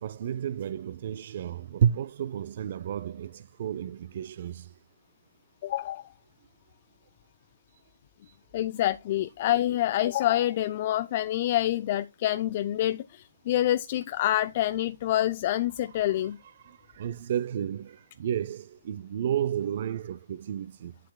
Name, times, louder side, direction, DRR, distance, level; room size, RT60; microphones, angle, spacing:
voice 1, 0.0-4.7 16.6-20.9, right 9 dB, 45° right, 0.4 m, -31 dB
voice 2, 5.6-6.0 8.5-16.4, left 13 dB, 35° left, 0.4 m, -27 dB
9.3 x 7.5 x 2.2 m
hypercardioid pair, 155°, 0 cm